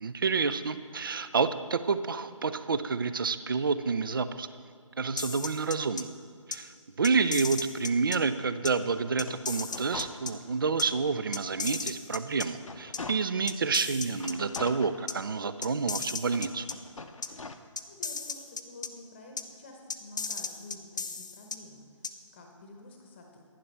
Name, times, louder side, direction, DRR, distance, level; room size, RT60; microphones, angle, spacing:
voice 1, 0.0-4.5 5.0-6.1 6.5-6.7 7.0-16.7, right 4 dB, 40° right, 13 dB, 0.4 m, -29 dB
sound 1, 5.2-6.0 6.5-6.6 7.0-8.2 8.6-8.7 9.2-10.3 10.8-10.9 11.3-12.5 12.9-13.0 13.5-14.6 15.1-15.2 15.6-16.7 17.2-17.3 17.8-18.9 19.4-19.5 19.9-21.6 22.0-22.1, left 5 dB, 35° left, 0.4 m, -35 dB
sound 2, 9.1-10.8 11.2-11.3 11.8-13.6 14.2-15.6 16.2-17.5, left 3 dB, 75° left, 0.7 m, -44 dB
voice 2, 17.5-23.4, left 2 dB, 20° left, 2 dB, 0.9 m, -50 dB
11.0 x 10.0 x 3.3 m, 2.3 s
figure-of-eight pair, 155°, 17 cm